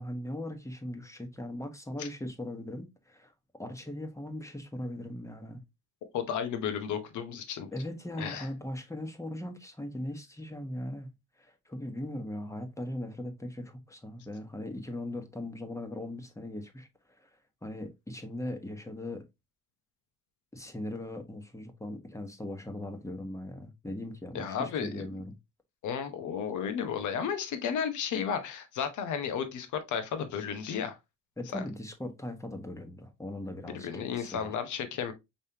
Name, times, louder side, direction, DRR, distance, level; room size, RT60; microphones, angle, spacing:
voice 1, 0.0-3.3 3.6-5.6 7.7-11.1 11.4-16.9 17.2-17.3 17.6-19.2 20.5-25.3 31.4-34.6, left 1 dB, 10° left, 1.1 m, -39 dB
voice 2, 6.1-7.7 8.2-8.5 24.3-25.0 25.8-31.0 31.5-31.6 33.7-35.1, left 7 dB, 75° left, 1.0 m, -33 dB
5.3 x 3.2 x 2.8 m
cardioid pair, 90°, 30 cm